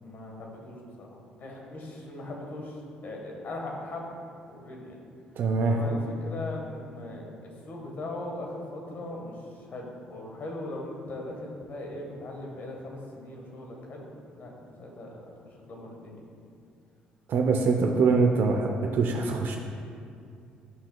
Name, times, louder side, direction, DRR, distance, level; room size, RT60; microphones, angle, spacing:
voice 1, 0.0-4.1 4.4-5.0 5.6-14.1 14.3-14.5 14.8-15.2 15.4-16.2, left 1 dB, 50° left, 0 dB, 1.5 m, -39 dB
voice 2, 5.4-5.8 17.3-19.6, right 4 dB, 55° right, 2 dB, 0.6 m, -24 dB
11.0 x 5.7 x 2.3 m, 2.4 s
hypercardioid pair, 50°, 4 cm